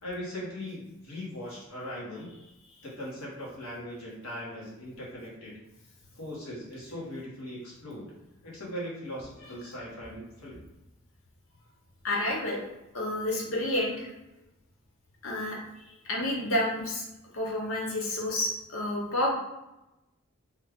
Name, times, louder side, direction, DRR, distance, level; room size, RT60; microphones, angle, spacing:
voice 1, 0.0-2.3 2.8-5.5 6.2-8.1 8.4-10.6, left 1 dB, 90° left, -6 dB, 1.4 m, -39 dB
voice 2, 12.0-12.6 12.9-14.1 15.2-15.6 16.1-17.0 17.3-19.3, left 1 dB, 75° left, -2 dB, 0.8 m, -29 dB
3.2 x 2.4 x 3.5 m, 0.95 s
head